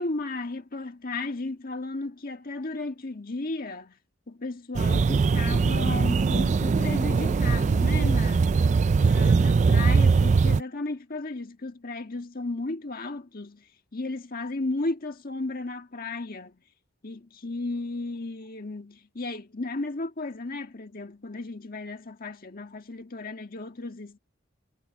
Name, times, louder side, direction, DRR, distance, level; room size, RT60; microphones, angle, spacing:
voice 1, 0.0-4.0 4.3-8.6 9.0-16.6 17.0-24.2, left 2 dB, 50° left, 1.6 m, -34 dB
sound 1, 4.7-10.6, right 4 dB, 35° right, 0.3 m, -21 dB
head